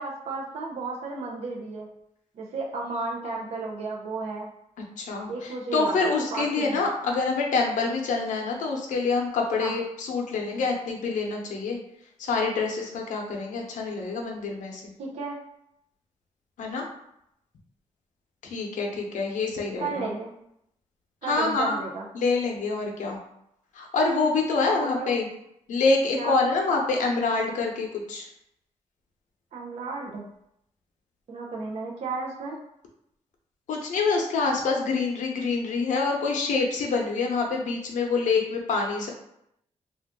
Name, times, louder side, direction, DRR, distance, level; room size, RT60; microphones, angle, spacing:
voice 1, 0.0-1.9 2.4-4.5 5.3-6.9 9.6-9.8 15.0-15.4 19.8-20.3 21.2-22.0 24.6-25.2 26.1-26.4 29.5-30.3 31.3-32.6, right 3 dB, 55° right, -1 dB, 0.5 m, -33 dB
voice 2, 5.0-11.8 12.2-14.9 16.6-16.8 18.4-20.1 21.2-21.8 22.1-23.2 23.7-25.3 25.7-28.3 33.7-39.1, left 4 dB, 80° left, 0 dB, 0.7 m, -26 dB
2.5 x 2.3 x 3.5 m, 0.77 s
wide cardioid pair, 150°, 13 cm